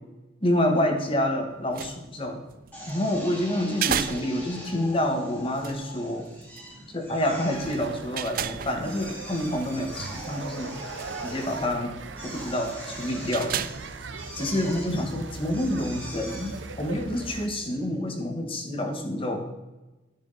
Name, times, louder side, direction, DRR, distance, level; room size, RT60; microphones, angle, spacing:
voice 1, 0.4-2.4 2.9-6.3 6.9-10.8 11.2-11.9 12.2-13.7 14.3-19.4, left 1 dB, 30° left, 4 dB, 1.5 m, -28 dB
sound 1, 1.5-15.0, right 9 dB, 50° right, 0.4 m, -37 dB
Drill, 2.7-18.0, equal, 10° left, 2.6 m, -43 dB
sound 2, 7.5-17.5, right 4 dB, 75° right, 0.7 m, -40 dB
13.0 x 6.4 x 4.1 m, 1.1 s
head